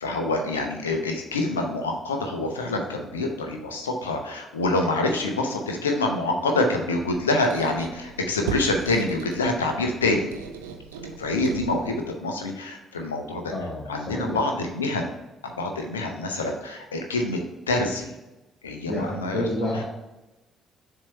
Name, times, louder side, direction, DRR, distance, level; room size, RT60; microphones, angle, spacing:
voice 1, 0.0-10.3 11.2-13.5 13.9-15.2 15.6-17.4 17.7-18.1 18.6-19.4, left 2 dB, 80° left, 3 dB, 0.7 m, -26 dB
Squeak, 6.8-12.1, right 6 dB, 75° right, 0.5 m, -38 dB
voice 2, 13.5-14.4 18.9-19.8, left 1 dB, 30° left, -3 dB, 1.2 m, -29 dB
7.3 x 2.9 x 4.5 m, 1.0 s
figure-of-eight pair, 45°, 0 cm